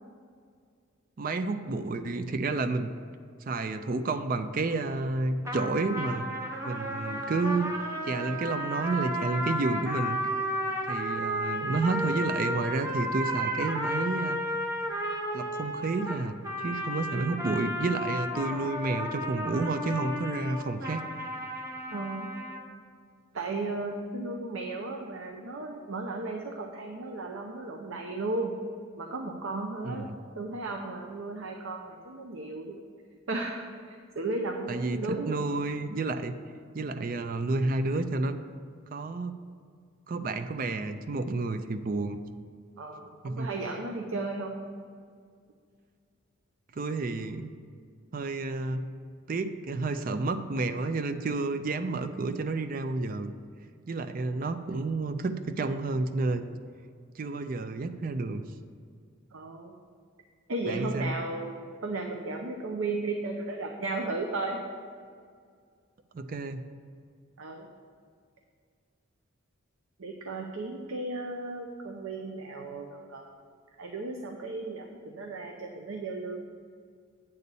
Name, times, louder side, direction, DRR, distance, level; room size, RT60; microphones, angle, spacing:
voice 1, 1.2-2.9 3.5-6.3 6.6-7.7 8.0-10.2 10.9-14.4 15.3-21.0 29.8-30.2 34.7-36.3 36.7-38.4 38.9-39.3 40.1-42.2 43.2-43.5 46.7-47.5 48.1-48.9 49.3-53.3 53.9-56.4 57.2-58.4 60.7-61.2 66.1-66.6, right 3 dB, 40° right, 10 dB, 0.4 m, -30 dB
sound 1, 5.4-22.6, equal, 15° right, 0.7 m, -33 dB
voice 2, 21.9-22.3 23.3-28.6 29.0-30.1 30.4-32.8 33.3-35.5 42.8-44.6 59.3-59.7 60.5-64.6 67.4-67.7 70.0-73.3 73.8-76.4, right 2 dB, 80° right, 2 dB, 0.6 m, -35 dB
8.5 x 4.1 x 6.9 m, 2.2 s
head